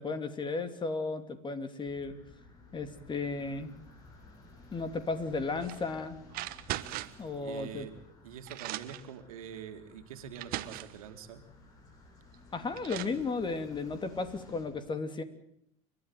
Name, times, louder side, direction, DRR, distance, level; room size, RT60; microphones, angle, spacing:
voice 1, 0.0-2.1 2.7-3.7 4.7-6.2 7.2-7.9 12.5-15.2, left 3 dB, 25° left, 10 dB, 3.0 m, -34 dB
sound 1, 1.9-14.6, left 3 dB, 70° left, 7.9 m, -55 dB
sound 2, 5.6-5.8 6.3-7.3 8.1-8.2 8.5-9.1 9.9-10.0 10.4-11.0 12.3-12.4 12.8-13.2, right 16 dB, 55° right, 1.4 m, -39 dB
voice 2, 7.4-8.0 8.2-11.5, right 8 dB, 80° right, 7 dB, 2.5 m, -45 dB
29.5 x 12.5 x 9.4 m, 0.72 s
hypercardioid pair, 85°, 18 cm